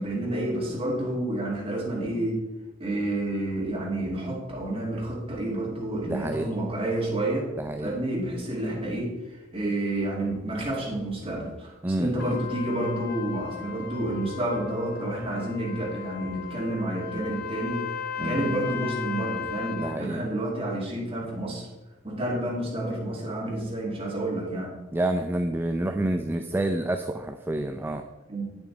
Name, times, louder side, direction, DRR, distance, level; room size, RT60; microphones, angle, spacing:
voice 1, 0.0-2.4 2.8-7.5 7.8-17.8 18.2-21.7 22.0-24.7 28.3-28.5, right 1 dB, 30° right, -3 dB, 2.2 m, -29 dB
voice 2, 6.1-6.5 7.6-7.9 11.8-12.4 18.2-18.5 19.8-20.2 24.9-28.0, right 1 dB, 10° right, 6 dB, 0.3 m, -28 dB
Trumpet, 12.2-20.0, left 8 dB, 50° left, 0.6 m, -36 dB
8.5 x 7.1 x 3.9 m, 1.1 s
head